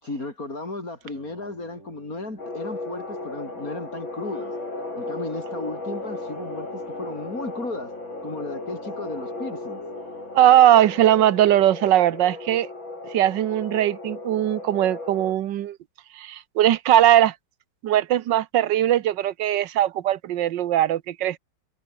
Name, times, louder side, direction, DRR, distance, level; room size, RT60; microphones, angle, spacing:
voice 1, 0.0-4.5 4.9-7.9 8.2-9.8, left 2 dB, 45° left, 6.0 m, -34 dB
Singing, 0.9-10.7, right 2 dB, 35° right, 6.2 m, -48 dB
sound 1, 2.4-15.3, left 2 dB, 85° left, 7.7 m, -35 dB
voice 2, 10.3-12.7 13.1-15.8 16.2-17.3 17.8-21.4, right 12 dB, 70° right, 1.5 m, -19 dB
omnidirectional pair, 2.1 m